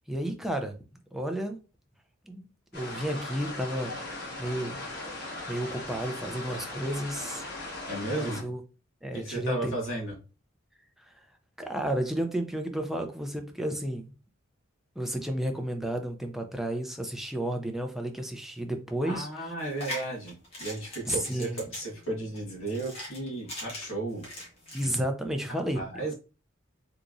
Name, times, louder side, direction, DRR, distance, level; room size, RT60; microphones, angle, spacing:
voice 1, 0.1-0.8 1.1-1.6 2.3-2.4 2.7-4.0 4.4-7.4 8.1-8.6 9.0-9.7 11.1-11.2 11.6-14.1 15.0-19.5 21.1-21.6 24.7-25.8, right 1 dB, ahead, 4 dB, 0.5 m, -32 dB
sound 1, 2.7-8.4, left 2 dB, 50° left, 1.3 m, -38 dB
voice 2, 7.9-8.4 9.1-10.1 19.0-24.2 25.5-26.1, right 2 dB, 75° left, -1 dB, 1.7 m, -34 dB
sound 2, 19.6-24.9, equal, 30° left, 1.3 m, -41 dB
3.6 x 2.9 x 2.5 m, 0.32 s
head